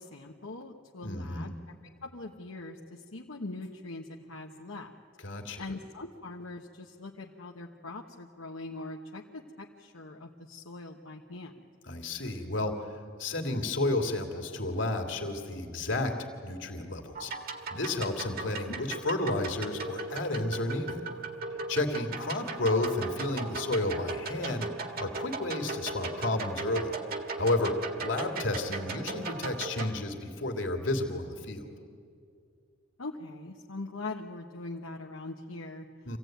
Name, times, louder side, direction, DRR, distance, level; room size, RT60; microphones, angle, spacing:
voice 1, 0.0-1.5 2.0-4.9 5.6-11.5 18.7-18.8 28.3-28.4 33.0-35.9, left 2 dB, 85° left, 0 dB, 1.1 m, -42 dB
voice 2, 1.0-1.5 5.2-5.6 11.9-12.9 13.2-17.3 17.7-21.0 21.7-27.0 27.4-31.6 36.0-36.2, left 2 dB, 65° left, 4 dB, 2.5 m, -31 dB
sound 1, 17.2-29.9, right 3 dB, 45° right, 1.8 m, -38 dB
25.5 x 16.0 x 9.2 m, 2.3 s
head